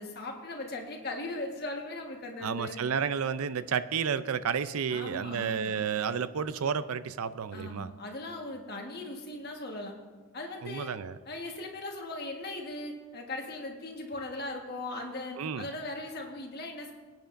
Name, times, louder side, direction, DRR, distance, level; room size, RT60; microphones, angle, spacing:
voice 1, 0.0-2.8 4.9-5.7 7.5-9.9 10.3-10.9 11.3-16.9, left 2 dB, 45° left, 1 dB, 1.4 m, -39 dB
voice 2, 2.4-7.9 10.6-11.2 15.4-15.7, right 6 dB, 75° right, 14 dB, 0.5 m, -31 dB
22.0 x 9.1 x 2.6 m, 1.4 s
head